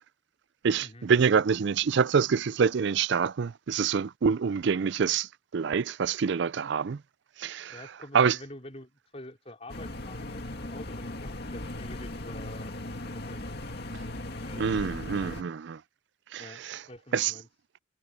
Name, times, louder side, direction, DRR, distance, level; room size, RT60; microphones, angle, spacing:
voice 1, 0.6-7.0 7.4-7.8 8.1-8.4 14.6-15.8 16.3-16.8 17.1-17.3, right 6 dB, 55° right, 0.4 m, -26 dB
voice 2, 7.7-13.5 14.4-15.6 16.4-17.5, left 1 dB, 30° left, 4.0 m, -47 dB
sound 1, 9.7-15.4, left 1 dB, 50° left, 2.3 m, -38 dB
head